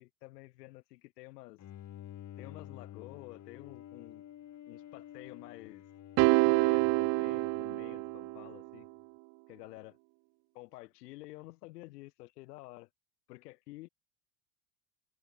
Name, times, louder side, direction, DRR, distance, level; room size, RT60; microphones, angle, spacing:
voice 1, 0.0-1.6 2.4-4.2 4.7-5.8 6.3-8.9 9.5-10.0 10.5-12.9 13.3-13.9, left 20 dB, 90° left, 7.1 m, -50 dB
Bowed string instrument, 1.6-8.8, left 11 dB, 35° left, 6.0 m, -50 dB
sound 1, 6.2-8.6, right 30 dB, 50° right, 0.5 m, -27 dB
supercardioid pair, 130°, 46 cm